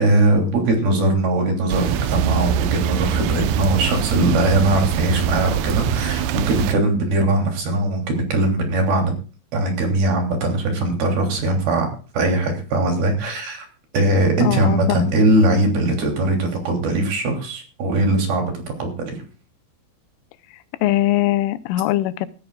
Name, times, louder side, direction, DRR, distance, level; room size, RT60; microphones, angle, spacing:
voice 1, 0.0-9.1 9.5-11.9 12.1-13.7 13.9-19.2, right 2 dB, 55° right, 2 dB, 4.7 m, -20 dB
sound 1, 1.7-6.7, right 8 dB, 80° right, 2.5 m, -23 dB
voice 2, 14.4-15.2 20.8-22.3, left 14 dB, 90° left, 14 dB, 3.3 m, -21 dB
20.0 x 13.0 x 2.4 m, 0.35 s
omnidirectional pair, 5.5 m